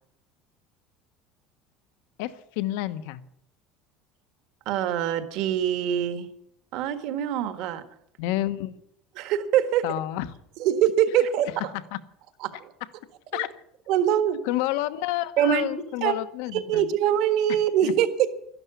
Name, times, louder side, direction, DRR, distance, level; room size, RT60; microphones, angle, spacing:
voice 1, 2.2-3.2 8.2-8.8 9.8-10.3 11.9-12.0 13.3-13.5 14.4-16.8 17.8-17.9, left 15 dB, 75° left, 12 dB, 1.0 m, -29 dB
voice 2, 4.6-6.3 6.7-7.8 9.2-9.8 10.6-11.5 12.4-12.7 13.3-13.4 13.9-14.4 15.4-15.7 16.0-16.1 16.5-18.3, right 10 dB, 55° right, 10 dB, 1.5 m, -23 dB
12.5 x 12.0 x 8.3 m, 0.74 s
cardioid pair, 170°, 0 cm